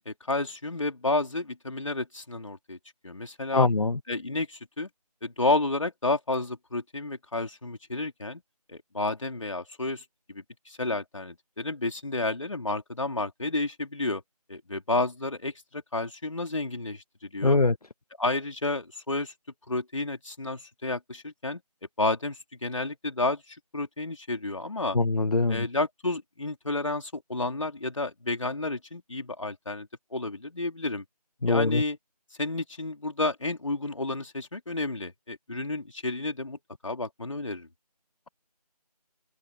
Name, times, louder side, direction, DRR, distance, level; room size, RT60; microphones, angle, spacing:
voice 1, 0.0-2.8 3.0-3.7 4.1-4.9 5.2-8.4 8.7-14.2 14.5-17.6 18.2-19.3 19.7-21.6 22.0-25.0 25.5-31.0 31.5-32.0 32.4-36.6 36.8-37.7, left 2 dB, 50° left, 4.2 m, -31 dB
voice 2, 3.5-4.0 17.4-17.7 24.9-25.7 31.4-31.8, left 3 dB, 65° left, 1.0 m, -23 dB
open air
figure-of-eight pair, 175°, 21 cm